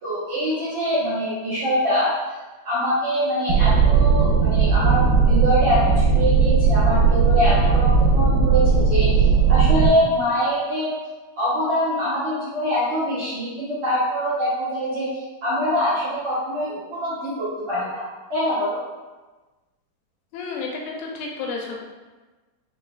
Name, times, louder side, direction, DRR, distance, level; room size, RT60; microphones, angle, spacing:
voice 1, 0.0-2.1 2.6-9.1 9.5-10.9 11.4-18.0 18.3-18.8, equal, 60° right, -12 dB, 1.5 m, -24 dB
sound 1, 3.5-9.9, right 5 dB, 90° right, 2.4 m, -17 dB
voice 2, 20.3-21.8, left 4 dB, 85° left, -1 dB, 2.3 m, -31 dB
5.3 x 3.3 x 2.4 m, 1.2 s
omnidirectional pair, 4.1 m